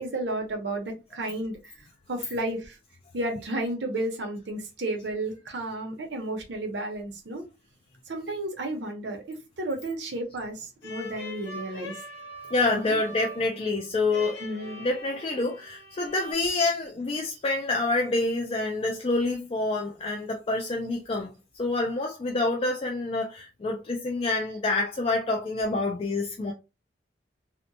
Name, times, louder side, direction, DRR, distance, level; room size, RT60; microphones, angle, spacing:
voice 1, 0.0-2.8 3.1-7.4 8.1-12.0 12.7-13.0 14.4-14.9, right 1 dB, 75° right, 0.7 m, -33 dB
sound 1, 10.8-16.3, equal, 90° left, 1.3 m, -42 dB
voice 2, 12.5-14.4 14.8-21.3 21.6-26.5, left 2 dB, 30° left, 0.3 m, -27 dB
2.8 x 2.1 x 2.6 m
head